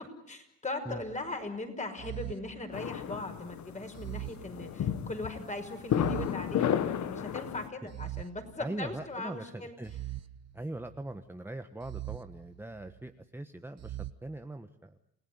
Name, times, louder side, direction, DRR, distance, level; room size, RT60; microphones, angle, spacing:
voice 1, 0.3-9.7, left 2 dB, 25° left, 6 dB, 5.8 m, -39 dB
sound 1, 0.9-1.3 2.0-3.3 3.9-5.2 5.9-7.2 7.9-9.2 9.8-11.1 11.8-13.1 13.8-14.1, right 15 dB, 60° right, 1.1 m, -43 dB
sound 2, 2.7-7.7, left 9 dB, 70° left, 1.7 m, -32 dB
voice 2, 8.6-9.9 10.5-15.0, right 1 dB, 10° right, 8 dB, 1.3 m, -41 dB
29.0 x 17.0 x 9.7 m, 0.73 s
cardioid pair, 90°, 30 cm